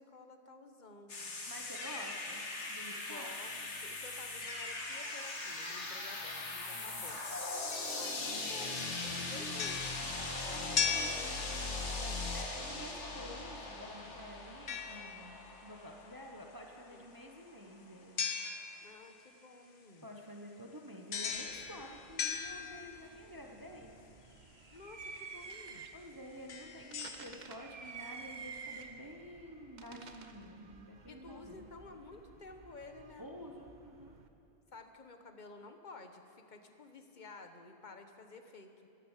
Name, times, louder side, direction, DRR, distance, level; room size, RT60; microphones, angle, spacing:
voice 1, 0.0-1.3 3.1-7.2 7.9-10.1 11.9-12.4 16.9-17.1 18.8-20.1 24.7-25.9 31.1-33.3 34.7-38.9, left 3 dB, 45° left, 6 dB, 1.2 m, -52 dB
sound 1, 1.1-17.0, left 2 dB, 90° left, 2.0 m, -40 dB
voice 2, 1.5-3.3 6.7-7.0 10.5-11.2 12.3-18.2 20.0-24.0 25.9-31.7 33.2-34.2, equal, 20° right, 1 dB, 1.0 m, -50 dB
sound 2, 7.7-8.4 8.8-12.0 14.7-15.6 18.2-19.1 21.1-23.2 24.8-24.9 25.5-25.7 26.3-27.3, left 6 dB, 65° left, 1.2 m, -39 dB
sound 3, 21.2-34.3, right 5 dB, 45° right, 0.8 m, -52 dB
14.5 x 11.5 x 7.4 m, 2.7 s
omnidirectional pair, 1.2 m